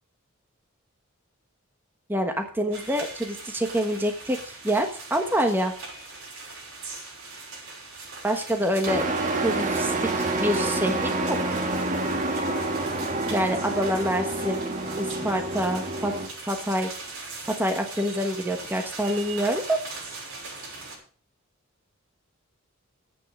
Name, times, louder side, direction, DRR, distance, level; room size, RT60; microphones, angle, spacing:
voice 1, 2.1-5.7 8.2-9.1 9.4-11.5 13.3-14.6 15.0-16.1 16.5-16.9 17.5-19.8, equal, 10° right, 4 dB, 1.2 m, -26 dB
sound 1, 2.7-21.0, right 3 dB, 80° right, 6.3 m, -40 dB
Truck, 8.9-16.3, right 2 dB, 35° right, 1.7 m, -28 dB
10.5 x 9.0 x 6.3 m, 0.43 s
head